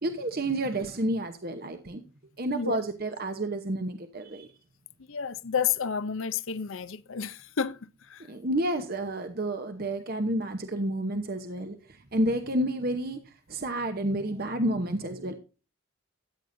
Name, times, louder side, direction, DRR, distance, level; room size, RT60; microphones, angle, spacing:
voice 1, 0.0-2.0 2.4-4.5 8.3-11.8 12.1-13.2 13.5-15.3, right 1 dB, 45° right, 0.9 m, -30 dB
voice 2, 5.1-8.3 12.2-12.3, left 7 dB, 70° left, 0.6 m, -31 dB
14.0 x 9.3 x 2.6 m
head